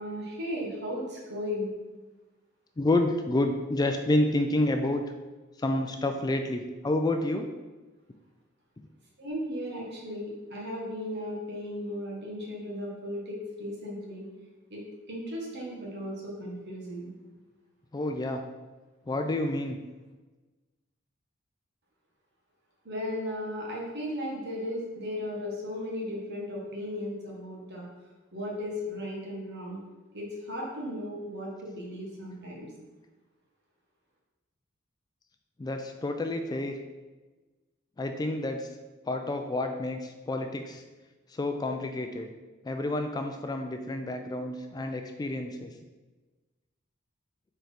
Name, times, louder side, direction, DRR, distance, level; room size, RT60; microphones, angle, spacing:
voice 1, 0.0-1.7 9.2-14.3 14.7-14.8 15.1-17.1 22.8-27.8 28.3-29.8 30.1-32.7, left 1 dB, 55° right, -3 dB, 1.6 m, -36 dB
voice 2, 2.8-5.0 5.6-7.5 17.9-18.4 19.1-19.8 35.6-36.8 38.0-38.7 39.1-40.8 41.3-42.3 42.6-45.7, left 2 dB, 20° left, 5 dB, 0.3 m, -29 dB
4.5 x 4.5 x 5.0 m, 1.2 s
head